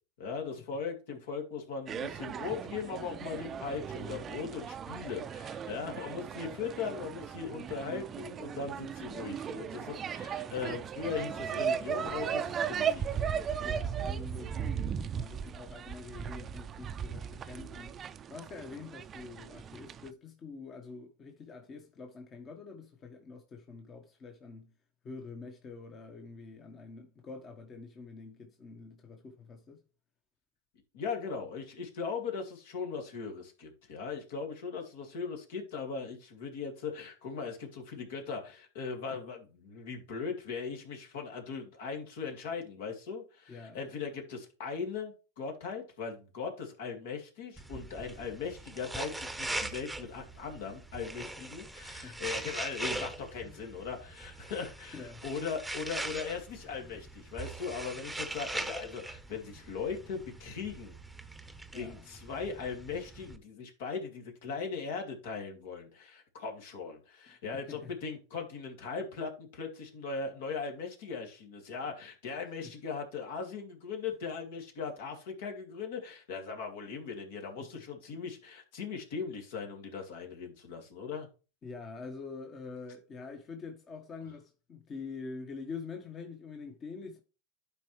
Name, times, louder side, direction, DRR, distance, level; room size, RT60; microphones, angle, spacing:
voice 1, 0.2-13.0 30.9-60.9 61.7-81.3, left 5 dB, 70° left, 2.4 m, -39 dB
sound 1, 1.9-20.1, right 7 dB, 30° right, 0.5 m, -37 dB
voice 2, 13.6-17.9 18.3-24.7 25.0-29.8 43.5-43.8 52.0-52.2 54.9-55.2 61.7-62.0 67.5-67.9 72.6-72.7 81.6-87.2, left 4 dB, 30° left, 1.3 m, -45 dB
sound 2, 47.6-63.4, right 2 dB, 5° right, 0.9 m, -41 dB
11.5 x 4.6 x 3.2 m
hypercardioid pair, 100°, 0 cm